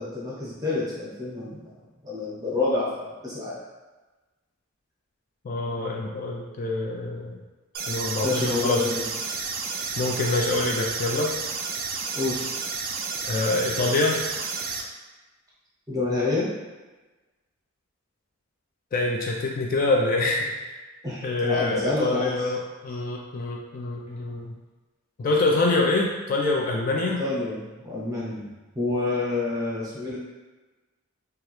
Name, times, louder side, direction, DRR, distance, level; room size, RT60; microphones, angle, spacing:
voice 1, 0.0-1.7 2.0-3.6 8.2-9.0 12.1-12.6 15.9-16.5 21.0-22.3 27.2-30.2, left 3 dB, 20° right, -6 dB, 0.9 m, -28 dB
voice 2, 5.4-7.4 7.9-8.8 10.0-11.3 13.3-14.2 18.9-20.6 21.2-24.5 25.2-27.2, left 2 dB, 40° left, -1 dB, 0.3 m, -25 dB
sound 1, 7.7-14.8, right 5 dB, 45° right, 0.3 m, -31 dB
2.9 x 2.3 x 3.0 m, 1.2 s
head